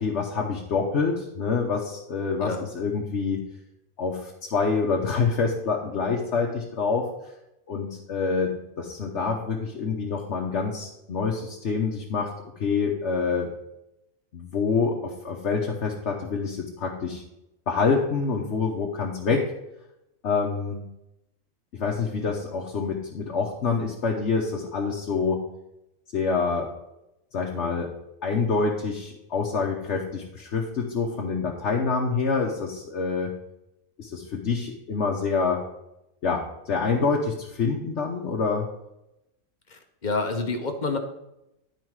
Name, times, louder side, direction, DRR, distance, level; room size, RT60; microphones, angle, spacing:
voice 1, 0.0-3.4 4.0-7.1 7.7-12.3 12.6-13.5 14.3-17.2 17.7-19.5 20.2-20.8 21.7-25.4 26.1-26.7 27.3-27.9 28.2-33.3 34.0-35.6 36.2-38.7, left 4 dB, 60° left, -2 dB, 1.2 m, -26 dB
voice 2, 39.7-41.0, left 3 dB, 40° left, 4 dB, 1.0 m, -28 dB
11.0 x 4.8 x 4.7 m, 0.87 s
omnidirectional pair, 1.4 m